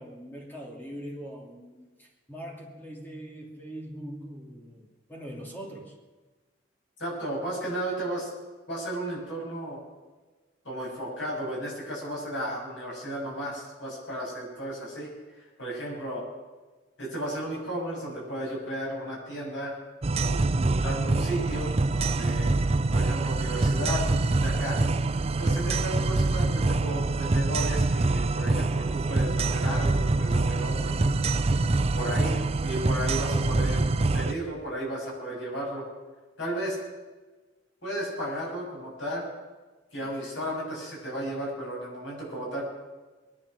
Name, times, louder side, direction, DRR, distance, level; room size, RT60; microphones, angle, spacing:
voice 1, 0.0-6.0, equal, 10° left, -1 dB, 2.8 m, -42 dB
voice 2, 7.0-8.3 8.7-9.8 10.6-16.2 17.0-19.8 20.2-22.5 22.9-24.0 24.4-24.8 25.4-31.0 31.9-32.4 32.6-33.8 34.1-35.9 36.4-36.8 37.8-39.2 39.9-42.7, right 1 dB, 75° left, -4 dB, 7.1 m, -34 dB
sound 1, 20.0-34.3, right 3 dB, 35° right, 0.5 m, -25 dB
22.0 x 10.5 x 6.1 m, 1.3 s
head